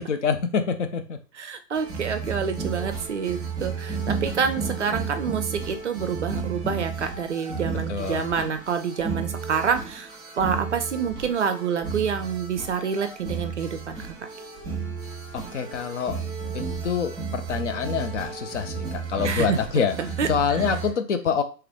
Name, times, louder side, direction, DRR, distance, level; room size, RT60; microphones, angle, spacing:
voice 1, 0.0-1.2 7.9-8.3 15.3-16.2 16.5-19.9 20.3-21.4, left 6 dB, 45° left, 8 dB, 0.6 m, -26 dB
voice 2, 1.3-10.1 10.4-14.0 19.2-19.6 20.0-20.6, right 6 dB, 45° right, 8 dB, 0.5 m, -27 dB
sound 1, 1.7-20.9, right 5 dB, 10° right, 1.3 m, -33 dB
3.2 x 3.0 x 3.5 m, 0.34 s
figure-of-eight pair, 115°, 50 cm